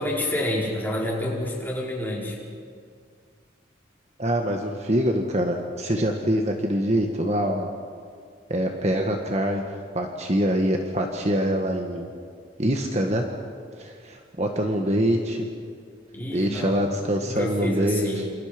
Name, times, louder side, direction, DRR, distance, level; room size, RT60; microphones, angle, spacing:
voice 1, 0.0-2.4 16.1-16.9 17.2-18.3, left 1 dB, 10° left, -4 dB, 5.0 m, -28 dB
voice 2, 4.2-7.7 8.5-9.6 9.9-12.1 12.6-13.3 13.8-15.5 16.3-18.2, equal, 35° right, 2 dB, 1.7 m, -24 dB
28.0 x 28.0 x 5.3 m, 2.1 s
head